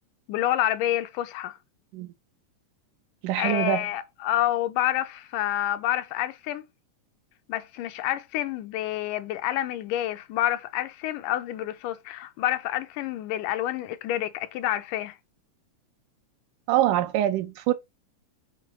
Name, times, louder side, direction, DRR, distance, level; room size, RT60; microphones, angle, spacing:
voice 1, 0.3-1.6 3.4-6.7 7.5-15.2, left 13 dB, 85° left, 2.2 m, -28 dB
voice 2, 3.2-3.9 16.7-17.7, right 13 dB, 85° right, 2.4 m, -24 dB
7.7 x 2.7 x 6.0 m
omnidirectional pair, 3.6 m